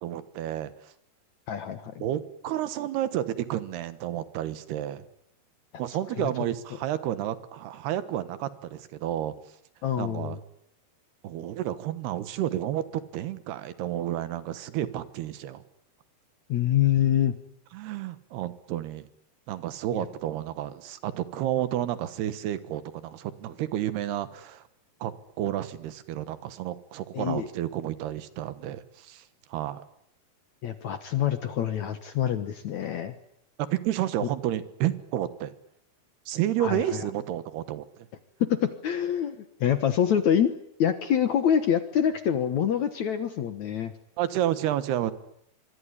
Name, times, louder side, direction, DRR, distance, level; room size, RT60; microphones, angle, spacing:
voice 1, 0.0-0.7 2.0-5.0 5.8-9.3 10.0-10.4 11.2-15.6 17.7-19.1 19.5-24.6 25.0-25.1 25.4-29.2 29.5-29.8 33.6-35.5 36.3-37.9 44.2-45.1, right 12 dB, 75° right, 13 dB, 3.3 m, -31 dB
voice 2, 1.5-2.0 6.2-6.3 9.8-10.4 16.5-17.3 19.9-20.1 27.1-27.5 30.6-33.2 36.6-37.0 38.5-40.5 40.8-43.9, left 9 dB, 60° left, 10 dB, 2.1 m, -26 dB
25.5 x 23.0 x 10.0 m, 0.74 s
omnidirectional pair, 4.7 m